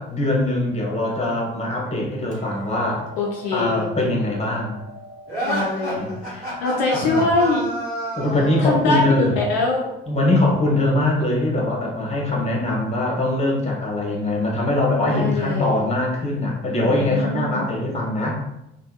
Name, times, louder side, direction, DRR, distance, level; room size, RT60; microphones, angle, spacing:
voice 1, 0.0-3.0 3.5-4.7 6.0-6.6 6.9-7.3 8.2-9.3 10.1-18.4, left 1 dB, 20° left, -2 dB, 1.0 m, -22 dB
Hammer, 2.3-8.5, equal, 25° right, 0.9 m, -44 dB
voice 2, 3.2-3.8 5.4-7.7 8.6-9.0 9.4-9.9 15.1-15.8 16.8-17.8, left 3 dB, 65° left, -2 dB, 0.5 m, -23 dB
sound 1, 5.3-8.8, right 1 dB, 85° right, 1.1 m, -28 dB
3.3 x 2.5 x 2.2 m, 0.86 s
figure-of-eight pair, 50°, 30 cm